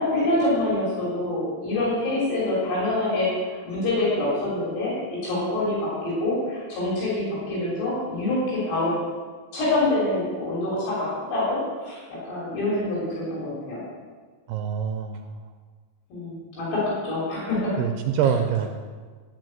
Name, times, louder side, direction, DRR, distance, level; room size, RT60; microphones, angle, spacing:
voice 1, 0.0-9.0 9.5-13.8 16.1-17.8, left 2 dB, 75° left, -7 dB, 5.5 m, -26 dB
voice 2, 14.5-15.2 17.8-18.7, right 8 dB, 80° right, 5 dB, 2.6 m, -24 dB
13.5 x 5.6 x 7.8 m, 1.5 s
omnidirectional pair, 4.9 m